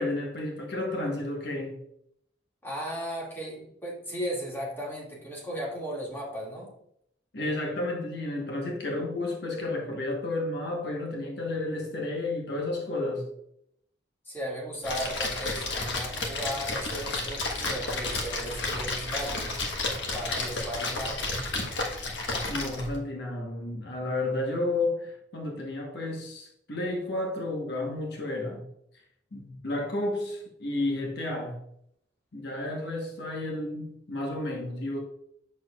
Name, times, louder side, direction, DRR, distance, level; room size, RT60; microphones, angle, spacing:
voice 1, 0.0-1.8 7.3-13.3 22.5-28.6 29.3-31.6 32.3-35.0, left 2 dB, 65° left, 1.2 m, -32 dB
voice 2, 2.6-6.7 14.2-19.5 20.1-21.4, equal, 15° left, 2.2 m, -36 dB
Splash splatter, 14.8-23.0, left 2 dB, 80° left, 1.3 m, -32 dB
7.3 x 6.4 x 2.4 m
head